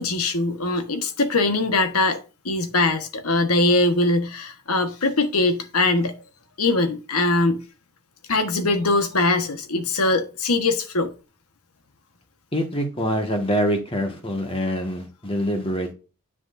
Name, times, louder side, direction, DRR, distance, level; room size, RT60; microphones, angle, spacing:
voice 1, 0.0-2.2 2.4-6.2 6.6-7.6 8.3-11.1, left 2 dB, 85° left, 1.3 m, -22 dB
voice 2, 12.5-15.9, equal, 25° left, 1.6 m, -25 dB
10.0 x 6.3 x 2.6 m
head